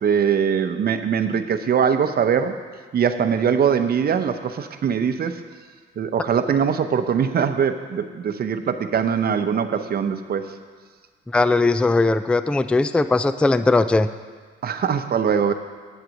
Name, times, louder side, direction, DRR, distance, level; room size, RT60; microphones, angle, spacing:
voice 1, 0.0-2.5 2.9-5.4 6.0-10.5 14.6-15.5, right 7 dB, 50° right, 8 dB, 0.8 m, -22 dB
voice 2, 11.3-14.1, left 3 dB, 5° left, 13 dB, 0.3 m, -19 dB
9.0 x 7.7 x 6.4 m, 1.5 s
cardioid pair, 90°, 20 cm